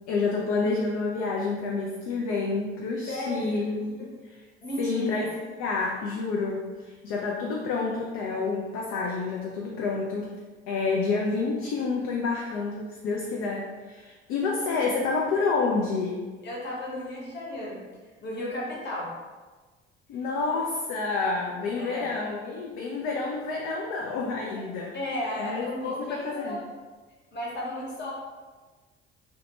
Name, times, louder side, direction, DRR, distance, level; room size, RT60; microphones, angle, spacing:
voice 1, 0.1-4.4 4.8-10.4 10.7-16.3 20.1-25.0 25.4-26.6, left 4 dB, 50° left, -1 dB, 0.4 m, -29 dB
voice 2, 3.1-3.5 4.0-4.1 4.6-5.3 16.4-17.8 18.2-19.1 21.7-22.1 24.9-26.7 27.3-28.1, left 1 dB, 35° left, -4 dB, 1.0 m, -34 dB
2.8 x 2.1 x 2.9 m, 1.3 s
figure-of-eight pair, 50°, 33 cm